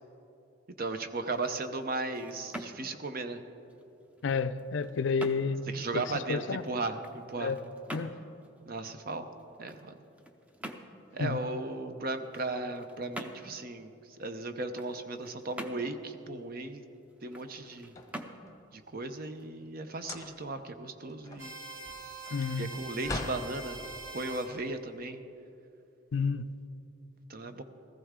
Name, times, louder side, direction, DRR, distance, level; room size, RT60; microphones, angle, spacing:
voice 1, 0.8-3.4 5.7-7.5 8.7-9.3 9.6-9.9 11.1-13.9 14.2-16.8 17.2-17.9 18.7-21.5 22.6-23.8 24.1-25.2 27.3-27.6, right 2 dB, 50° right, 0.7 m, -36 dB
sound 1, 1.2-20.0, right 1 dB, 5° right, 0.6 m, -48 dB
voice 2, 4.2-5.7 5.9-6.6 7.4-7.6 7.9-8.1 11.2-11.4 22.3-22.7 26.1-26.5, left 5 dB, 70° left, 0.4 m, -30 dB
sound 2, 17.6-18.7 19.9-20.6 21.0-23.5, left 2 dB, 15° left, 0.9 m, -41 dB
sound 3, 21.4-24.5, right 3 dB, 90° right, 1.9 m, -44 dB
15.5 x 14.5 x 3.7 m
head